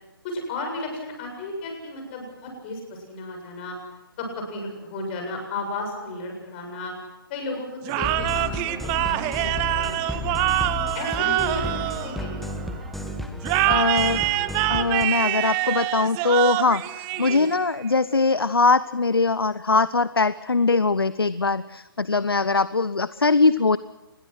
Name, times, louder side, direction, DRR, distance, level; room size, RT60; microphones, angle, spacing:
voice 1, 0.2-3.8 4.2-6.9 7.3-10.5 10.9-12.8 17.3-17.4, left 2 dB, 30° left, 3 dB, 7.5 m, -34 dB
sound 1, 7.8-12.7 13.4-17.8, right 16 dB, 20° right, 0.8 m, -25 dB
sound 2, 7.9-15.1, left 2 dB, ahead, 1.3 m, -33 dB
voice 2, 13.7-14.2 14.7-23.8, left 4 dB, 75° left, 17 dB, 0.8 m, -21 dB
28.5 x 21.5 x 6.3 m, 1.1 s
figure-of-eight pair, 140°, 12 cm